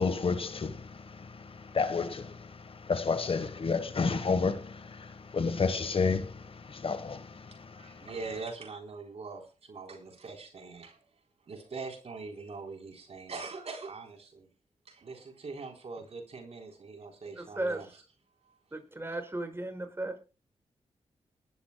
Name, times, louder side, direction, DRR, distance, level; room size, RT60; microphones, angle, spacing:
voice 1, 0.0-8.1, left 4 dB, 55° left, 1.3 m, -31 dB
voice 2, 7.8-11.0 11.5-14.5 14.9-17.9, right 4 dB, 65° right, 3.8 m, -42 dB
voice 3, 17.3-18.0 18.7-20.2, right 2 dB, 20° right, 5.3 m, -35 dB
21.0 x 13.0 x 2.3 m
cardioid pair, 50°, 11 cm